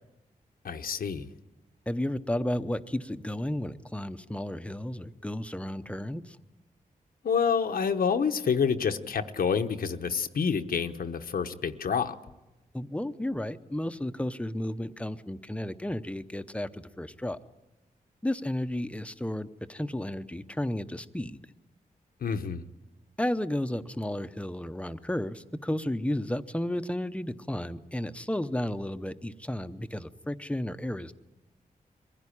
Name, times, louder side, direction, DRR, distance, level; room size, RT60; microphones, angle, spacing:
voice 1, 0.6-1.3 7.2-12.2 22.2-22.6, left 6 dB, 80° left, 1.0 m, -28 dB
voice 2, 1.9-6.4 12.7-17.4 18.2-21.4 23.2-31.1, left 1 dB, 10° left, 0.8 m, -33 dB
23.0 x 15.5 x 10.0 m
wide cardioid pair, 110°, 15 cm